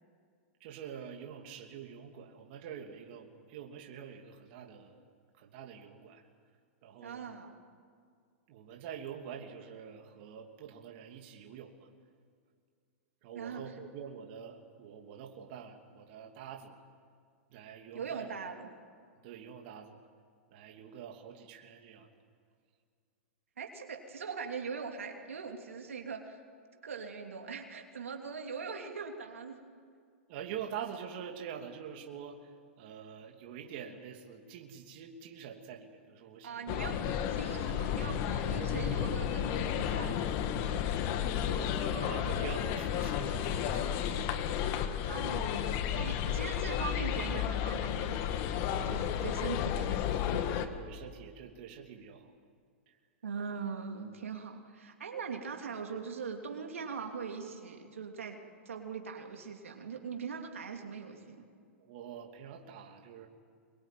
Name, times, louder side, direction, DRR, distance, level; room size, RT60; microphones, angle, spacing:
voice 1, 0.6-5.0 5.4-6.2 6.8-7.3 8.5-11.9 13.2-16.7 17.5-18.3 19.2-20.0 20.5-22.1 30.3-37.2 37.5-37.6 38.6-39.1 40.4-40.9 41.3-44.7 50.3-52.4 52.9-53.0 61.8-63.3, right 8 dB, 55° right, 2 dB, 2.8 m, -46 dB
voice 2, 7.0-7.5 13.3-13.6 17.9-18.7 23.6-26.4 26.8-29.6 36.4-40.2 41.7-42.4 45.1-45.5 45.8-48.2 48.8-50.5 53.2-58.4 58.6-61.4, right 5 dB, 90° right, 3 dB, 3.1 m, -41 dB
sound 1, 36.7-50.7, left 9 dB, 45° left, 1.8 m, -32 dB
25.5 x 22.5 x 9.3 m, 2.1 s
hypercardioid pair, 125°, 7 cm